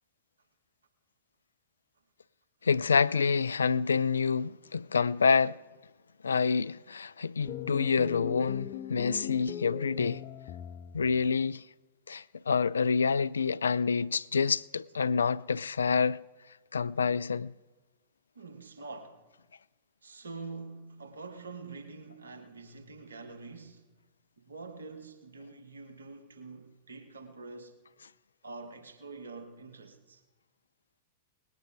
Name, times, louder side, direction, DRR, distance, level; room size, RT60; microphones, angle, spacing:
voice 1, 2.6-5.6 6.2-10.2 10.9-11.6 12.1-16.2 16.7-17.5, left 5 dB, 70° left, 0.3 m, -27 dB
sound 1, 7.4-11.2, left 10 dB, 45° left, 0.7 m, -39 dB
voice 2, 18.3-19.2 20.0-23.9 24.4-27.8 28.4-30.2, right 3 dB, 75° right, 1.4 m, -45 dB
19.0 x 9.0 x 4.8 m
figure-of-eight pair, 100°, 0 cm